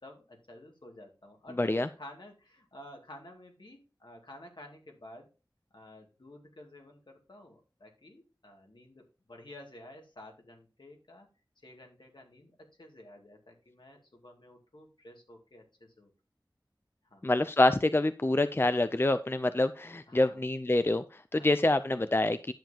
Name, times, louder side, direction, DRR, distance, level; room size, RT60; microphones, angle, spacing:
voice 1, 0.0-5.3 5.7-11.3 11.6-16.1 17.0-17.2 20.1-20.4 21.3-21.5, left 1 dB, 75° left, 1 dB, 2.4 m, -52 dB
voice 2, 1.6-1.9 17.2-22.5, left 2 dB, 30° left, 11 dB, 0.5 m, -26 dB
10.5 x 7.3 x 2.9 m, 0.31 s
wide cardioid pair, 40°, 8 cm